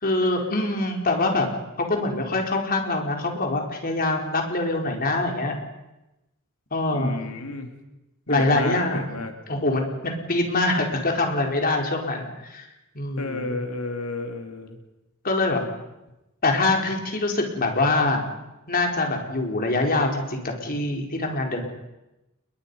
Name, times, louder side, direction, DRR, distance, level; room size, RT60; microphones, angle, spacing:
voice 1, 0.0-1.5 1.8-5.5 6.7-7.2 8.3-9.0 9.5-12.7 12.9-13.5 15.2-15.6 16.4-18.2 18.7-21.7, left 2 dB, 45° left, 2 dB, 4.2 m, -24 dB
voice 2, 6.9-7.7 8.3-9.3 13.2-14.8, left 2 dB, 90° left, 5 dB, 2.8 m, -31 dB
29.5 x 21.5 x 5.5 m, 0.96 s
head